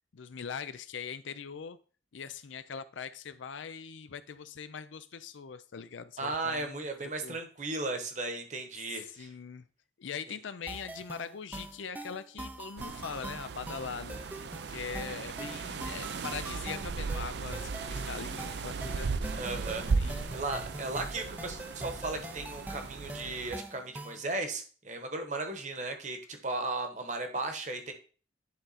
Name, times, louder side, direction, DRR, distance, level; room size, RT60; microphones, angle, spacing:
voice 1, 0.1-1.8 2.1-6.9 7.2-7.4 8.9-9.7 10.0-14.2 14.6-19.1 19.9-20.4, left 6 dB, 85° left, 12 dB, 0.5 m, -41 dB
voice 2, 6.2-9.3 19.4-27.9, right 2 dB, 40° right, 6 dB, 1.1 m, -36 dB
sound 1, 10.7-24.3, right 1 dB, 10° right, 0.4 m, -43 dB
sound 2, 12.8-23.6, right 4 dB, 65° right, 0.4 m, -36 dB
10.5 x 3.8 x 4.1 m, 0.39 s
head